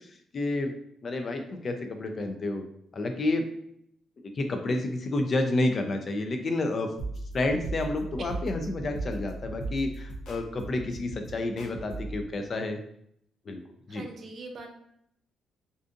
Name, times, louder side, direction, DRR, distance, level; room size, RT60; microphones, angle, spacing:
voice 1, 0.3-0.7 1.0-2.6 2.9-3.4 4.4-6.9 7.3-12.8 13.5-13.6 13.9-14.0, left 2 dB, 45° left, 5 dB, 0.4 m, -29 dB
sound 1, 7.0-12.2, right 2 dB, 85° left, 0.6 m, -37 dB
voice 2, 13.9-14.7, right 3 dB, 55° right, 3 dB, 0.5 m, -42 dB
2.5 x 2.4 x 2.4 m, 0.72 s
cardioid pair, 90°, 0 cm